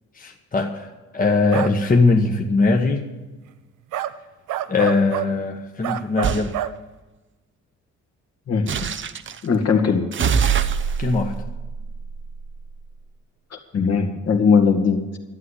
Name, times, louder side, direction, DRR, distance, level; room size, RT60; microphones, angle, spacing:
voice 1, 0.1-3.1 4.7-6.6 11.0-11.4, left 3 dB, 30° left, 2 dB, 1.3 m, -20 dB
sound 1, 1.5-1.8 3.9-4.2 4.5-5.3 5.8-6.8, right 12 dB, 85° right, 0.7 m, -27 dB
sound 2, 6.2-6.5 8.7-9.4 10.1-12.7, right 7 dB, 40° right, 0.8 m, -24 dB
voice 2, 9.4-10.1 13.5-15.2, left 5 dB, 55° left, 4 dB, 2.0 m, -19 dB
12.5 x 8.2 x 10.0 m, 1.1 s
cardioid pair, 90°, 30 cm